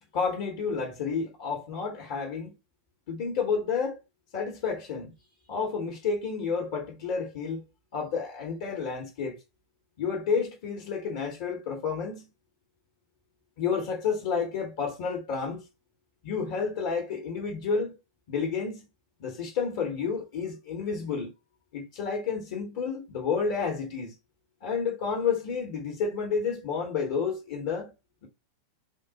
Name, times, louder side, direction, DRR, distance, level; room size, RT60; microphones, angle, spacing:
voice 1, 0.1-2.5 3.1-4.0 4.3-5.1 5.5-7.6 7.9-9.4 10.0-12.3 13.6-15.6 16.2-18.0 18.3-18.9 19.2-21.3 21.7-24.2 24.6-27.9, left 5 dB, 50° left, 0.8 m, -30 dB
3.6 x 2.0 x 3.8 m
figure-of-eight pair, 90°, 0 cm